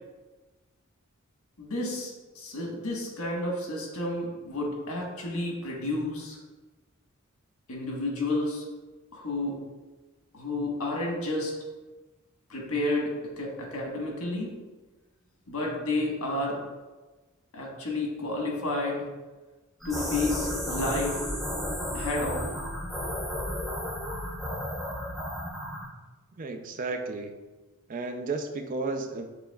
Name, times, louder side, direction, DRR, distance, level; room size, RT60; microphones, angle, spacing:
voice 1, 1.6-6.4 7.7-8.6 9.1-9.6 10.3-11.5 12.5-14.5 15.5-16.6 17.5-19.1 19.8-21.2 21.9-22.6, left 2 dB, 85° left, -1 dB, 1.2 m, -31 dB
sound 1, 19.8-25.9, equal, ahead, 0.8 m, -33 dB
voice 2, 26.4-27.4 27.9-29.3, right 3 dB, 40° right, 6 dB, 0.4 m, -33 dB
6.8 x 3.4 x 2.3 m, 1.2 s
head